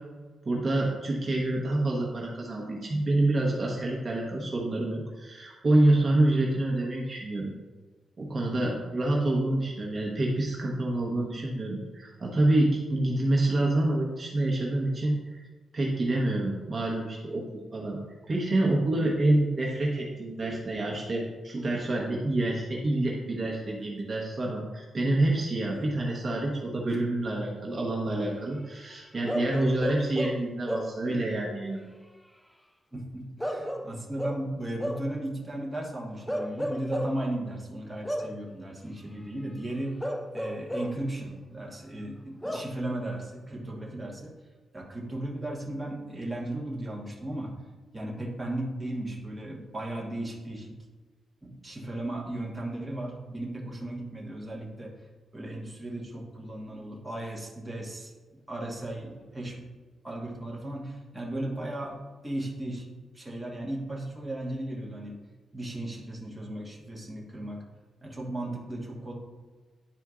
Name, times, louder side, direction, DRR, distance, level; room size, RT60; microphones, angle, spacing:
voice 1, 0.4-7.5 8.2-15.4 15.7-17.4 17.7-18.0 18.3-31.8, right 1 dB, 35° right, -3 dB, 1.1 m, -27 dB
Bark / Livestock farm animals working animals, 29.3-31.1 33.4-35.2 36.3-37.3 38.0-38.4 40.0-41.1 42.4-42.8, equal, 5° left, 0.4 m, -33 dB
voice 2, 32.9-40.0 40.3-44.3 44.7-47.6 47.9-50.7 51.4-54.9 55.3-58.1 58.5-59.6 60.0-62.8 63.1-65.2 65.5-67.6 68.0-69.1, right 1 dB, 15° right, -3 dB, 1.3 m, -36 dB
10.5 x 4.4 x 2.4 m, 1.3 s
cardioid pair, 125°, 0 cm